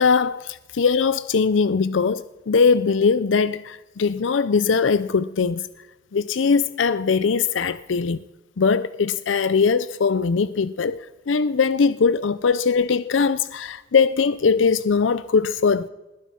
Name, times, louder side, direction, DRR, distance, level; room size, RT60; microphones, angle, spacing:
voice 1, 0.0-5.6 6.1-8.2 8.6-15.9, left 5 dB, 90° left, 0.5 m, -21 dB
20.5 x 12.0 x 5.7 m
head